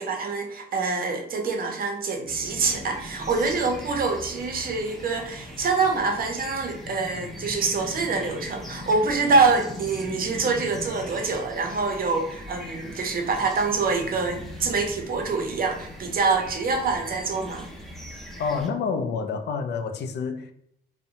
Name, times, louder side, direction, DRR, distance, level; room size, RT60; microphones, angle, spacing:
voice 1, 0.0-17.7, right 4 dB, 50° right, 0.6 m, -25 dB
sound 1, 2.3-18.7, left 1 dB, ahead, 0.6 m, -40 dB
voice 2, 18.4-20.5, left 5 dB, 60° left, 0.4 m, -28 dB
2.6 x 2.1 x 2.8 m
cardioid pair, 90°, 20 cm